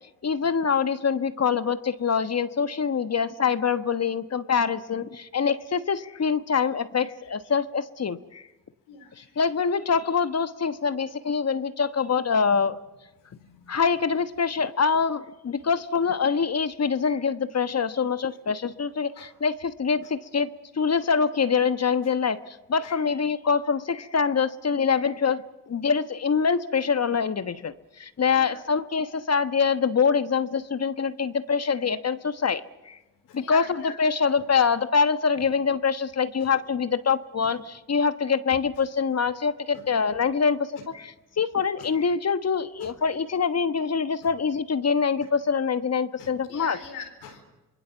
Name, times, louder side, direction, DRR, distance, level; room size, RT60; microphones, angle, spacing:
voice 1, 0.2-8.4 9.4-12.8 13.7-20.5 20.7-33.0 33.3-40.6 40.9-46.8, left 6 dB, 40° left, 12 dB, 1.2 m, -25 dB
voice 2, 8.9-9.4 13.4-13.8 19.2-19.3 22.8-22.9 28.4-28.6 33.3-33.9 34.4-34.5 35.4-35.5 36.4-36.5 39.7-39.8 41.8-41.9 42.8-42.9 44.2-44.3 46.2-47.4, left 6 dB, 85° left, 1 dB, 4.3 m, -42 dB
26.5 x 21.0 x 7.1 m, 1.1 s
hypercardioid pair, 45°, 39 cm